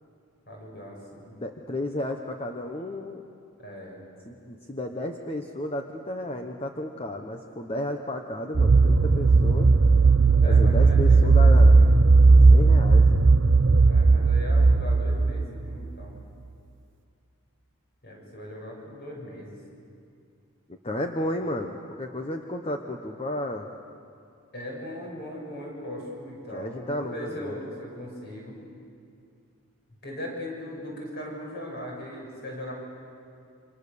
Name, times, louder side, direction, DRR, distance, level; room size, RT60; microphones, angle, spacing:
voice 1, 0.5-1.4 3.6-4.0 10.4-12.0 13.8-16.2 18.0-19.6 24.5-28.6 30.0-32.7, left 1 dB, 45° left, -1 dB, 7.0 m, -39 dB
voice 2, 1.3-3.2 4.3-9.7 10.4-11.8 12.5-13.1 20.8-23.7 26.5-27.5, left 1 dB, 25° left, 4 dB, 1.0 m, -32 dB
sound 1, 8.5-15.9, right 3 dB, 55° right, 0.6 m, -17 dB
29.0 x 25.5 x 6.9 m, 2.5 s
head